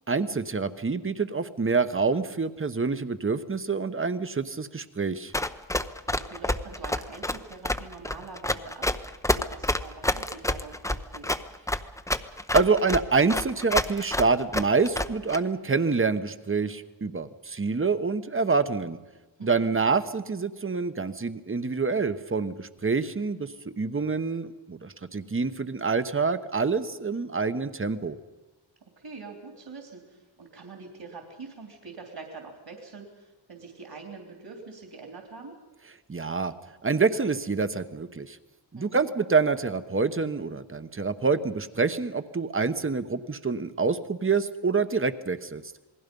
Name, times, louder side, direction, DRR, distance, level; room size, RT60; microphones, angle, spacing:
voice 1, 0.1-5.3 12.5-19.0 19.4-28.2 36.1-36.5 36.8-38.4 38.7-45.6, right 4 dB, 25° right, 11 dB, 1.0 m, -26 dB
Run, 5.3-15.4, left 1 dB, 5° left, 0.7 m, -28 dB
voice 2, 6.1-11.4 19.4-19.7 28.8-35.6 38.7-39.1, right 4 dB, 60° right, 2 dB, 3.3 m, -44 dB
28.0 x 20.0 x 5.4 m, 1.2 s
wide cardioid pair, 105°, 47 cm